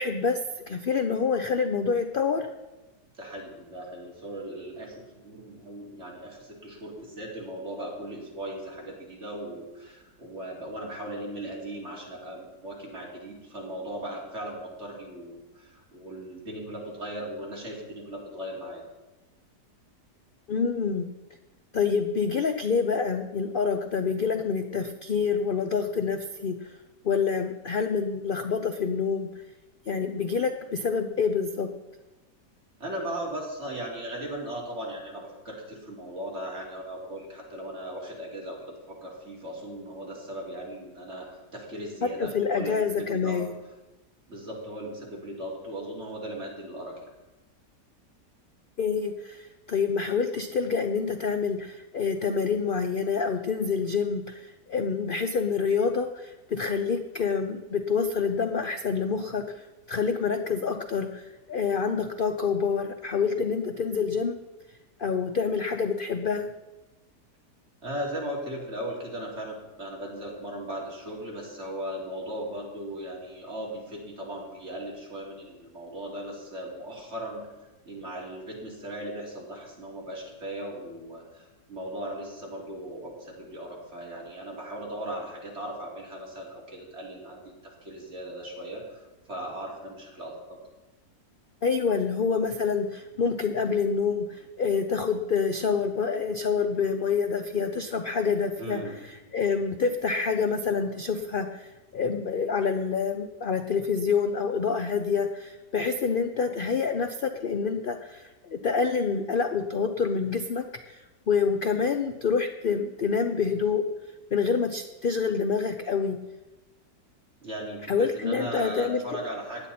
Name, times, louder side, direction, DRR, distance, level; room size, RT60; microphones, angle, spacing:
voice 1, 0.0-2.5 20.5-21.1 21.7-26.8 27.0-29.4 29.9-31.7 42.0-43.5 48.8-64.4 65.0-66.5 91.6-113.9 114.3-116.2 117.9-119.0, left 5 dB, 65° left, 7 dB, 0.5 m, -27 dB
voice 2, 3.2-18.8 32.8-43.4 44.3-47.0 67.8-77.4 77.8-90.6 98.6-99.0 117.4-119.7, right 1 dB, 40° right, -3 dB, 3.4 m, -38 dB
17.0 x 10.5 x 4.2 m, 1.1 s
omnidirectional pair, 1.8 m